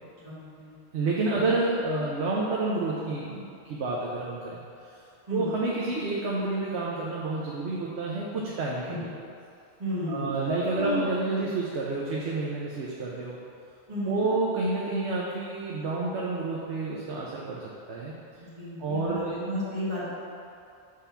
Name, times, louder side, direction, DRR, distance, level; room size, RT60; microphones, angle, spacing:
voice 1, 0.2-0.7 5.3-5.5 8.9-9.0 9.8-10.2 10.8-11.0 13.9-14.2 18.4-20.1, equal, 35° right, -12 dB, 1.8 m, -33 dB
voice 2, 0.9-4.6 5.3-9.1 10.1-13.4 14.0-18.1 18.8-19.4, right 3 dB, 80° right, -4 dB, 1.0 m, -29 dB
6.7 x 3.4 x 5.7 m, 2.6 s
omnidirectional pair, 1.1 m